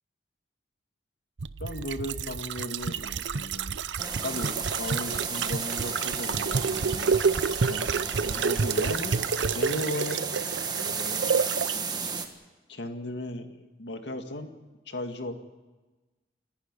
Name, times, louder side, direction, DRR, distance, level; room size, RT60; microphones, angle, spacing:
sound 1, 1.4-11.8 12.0-12.1, right 5 dB, 85° right, 0.6 m, -29 dB
voice 1, 1.6-3.8 4.2-7.1 7.7-9.1 9.5-10.2 10.7-11.3 12.7-14.5 14.9-15.3, left 1 dB, 80° left, 6 dB, 2.1 m, -36 dB
sound 2, 4.0-12.3, right 5 dB, 25° right, 1.6 m, -34 dB
29.0 x 11.5 x 9.7 m, 1.2 s
head